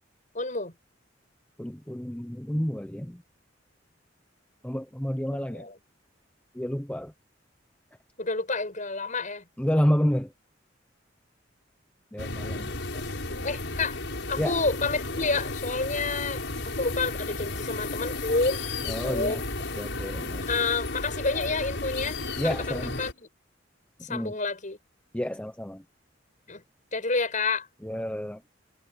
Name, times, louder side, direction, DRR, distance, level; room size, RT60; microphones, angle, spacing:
voice 1, 0.3-0.7 5.4-5.8 8.2-9.4 12.9-13.0 13.4-14.0 14.3-16.4 16.8-18.6 18.9-19.4 20.5-22.2 22.4-23.3 24.1-24.8 26.5-26.6 26.9-27.7, left 3 dB, 45° left, 7.3 m, -29 dB
voice 2, 1.6-3.2 4.6-5.7 6.5-7.1 9.6-10.3 12.1-12.8 14.4-14.6 18.9-19.4 19.8-20.5 22.4-23.0 24.1-24.3 25.1-25.8 27.8-28.4, equal, 5° left, 0.9 m, -29 dB
sound 1, 12.2-23.1, left 2 dB, 75° left, 6.4 m, -33 dB
head